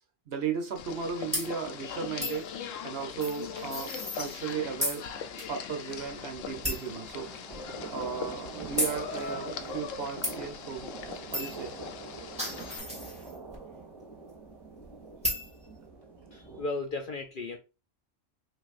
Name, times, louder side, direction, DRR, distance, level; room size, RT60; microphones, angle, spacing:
voice 1, 0.3-2.5 2.8-5.0 5.3-10.8 11.3-11.7, right 6 dB, 55° right, 0.9 m, -36 dB
sound 1, 0.8-12.8, left 7 dB, 80° left, 1.0 m, -41 dB
Tire gauge pin ringing and clicks, 1.3-1.5 2.2-2.4 3.2-4.5 4.8-5.0 5.4-5.5 5.9-6.0 6.6-6.9 7.5-7.6 8.8-9.0 10.2-10.3 11.3-11.6 12.1-13.5 15.2-15.5, left 1 dB, 5° right, 1.8 m, -33 dB
sound 2, 5.9-16.6, right 3 dB, 20° right, 2.1 m, -45 dB
voice 2, 16.3-17.6, left 3 dB, 55° left, 0.6 m, -35 dB
6.0 x 2.6 x 2.4 m
omnidirectional pair, 1.3 m